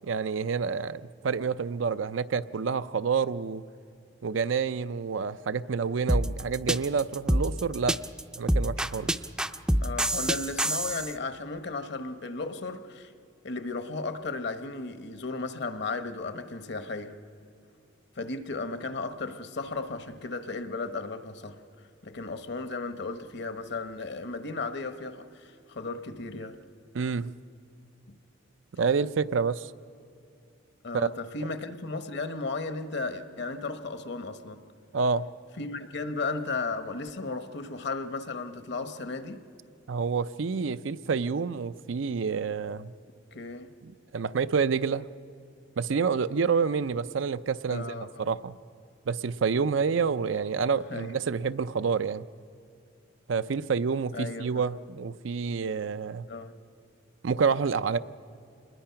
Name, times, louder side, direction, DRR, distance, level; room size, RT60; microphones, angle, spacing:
voice 1, 0.0-3.6 4.2-8.0 8.4-9.1 26.9-27.3 28.8-29.7 30.9-31.1 34.9-35.3 39.9-42.9 43.8-45.1 45.8-48.6 49.1-52.3 53.3-56.3 57.2-58.0, right 5 dB, 85° right, 14 dB, 0.5 m, -28 dB
sound 1, 6.1-11.1, right 1 dB, 5° right, 0.4 m, -26 dB
voice 2, 9.8-13.1 13.4-17.1 18.2-21.6 22.0-26.6 30.8-34.6 35.6-39.4 43.3-43.7 47.7-48.2 50.9-51.2 54.1-54.6 56.3-56.5, left 3 dB, 60° left, 10 dB, 1.1 m, -35 dB
27.0 x 21.0 x 5.8 m, 2.5 s
head